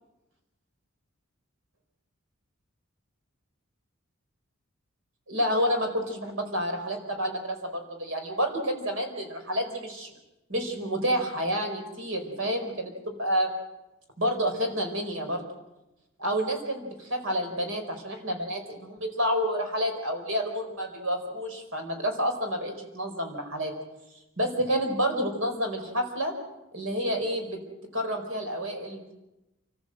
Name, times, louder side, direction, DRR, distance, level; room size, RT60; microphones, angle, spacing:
voice 1, 5.3-10.1 10.5-13.5 14.2-15.4 16.2-23.7 24.4-26.3 26.7-27.6 27.9-29.0, equal, 75° right, 4 dB, 4.4 m, -29 dB
28.5 x 14.5 x 7.7 m, 0.97 s
head